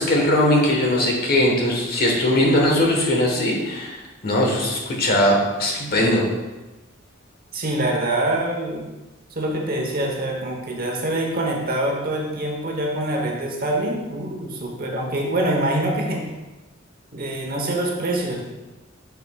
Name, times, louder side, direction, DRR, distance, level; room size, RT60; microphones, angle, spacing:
voice 1, 0.0-6.2, left 1 dB, 50° left, -1 dB, 1.2 m, -20 dB
voice 2, 7.5-8.9 9.3-16.3 17.1-18.4, right 1 dB, 45° right, 1 dB, 0.9 m, -25 dB
7.0 x 5.8 x 2.3 m, 1.1 s
head